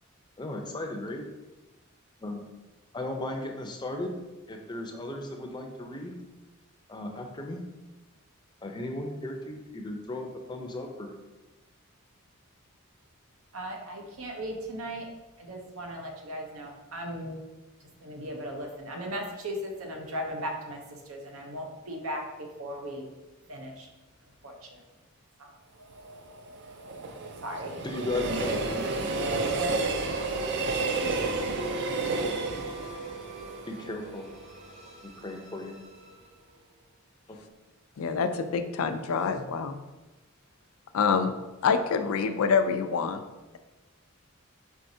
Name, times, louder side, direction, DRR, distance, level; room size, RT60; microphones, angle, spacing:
voice 1, 0.4-1.3 2.2-2.4 2.9-4.2 4.5-6.2 6.9-7.6 8.6-11.1 27.8-29.0 33.7-34.3 35.0-35.7 37.3-37.4, left 1 dB, 20° left, 3 dB, 0.5 m, -36 dB
voice 2, 13.5-15.1 15.4-17.4 18.0-23.1 23.5-23.9 24.4-24.8 25.4-25.5 27.4-27.9 29.6-29.7, equal, 85° right, 2 dB, 0.8 m, -37 dB
Train, 25.8-34.9 35.3-35.4, right 3 dB, 55° right, 0.4 m, -31 dB
sound 1, 28.1-36.5, right 1 dB, 30° right, 0.9 m, -45 dB
voice 3, 38.0-39.8 40.9-41.3 41.6-43.2, left 5 dB, 90° left, 8 dB, 0.4 m, -26 dB
4.5 x 4.1 x 2.7 m, 1.1 s
head